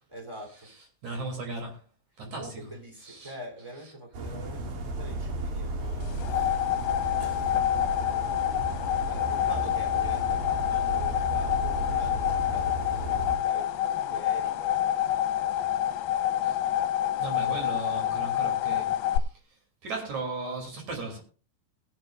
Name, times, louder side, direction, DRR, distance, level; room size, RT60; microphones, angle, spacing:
voice 1, 0.1-0.7 2.4-6.6 7.2-8.2 9.0-16.2, right 1 dB, 10° right, 2.8 m, -44 dB
voice 2, 1.0-1.8 2.2-2.6 3.1-3.3 16.4-16.6 17.2-19.2 19.8-21.2, right 3 dB, 55° right, 4.2 m, -36 dB
sound 1, 4.1-13.4, right 1 dB, 70° right, 3.7 m, -34 dB
sound 2, 6.0-19.2, left 11 dB, 85° left, 2.6 m, -27 dB
20.0 x 11.0 x 2.5 m
omnidirectional pair, 4.2 m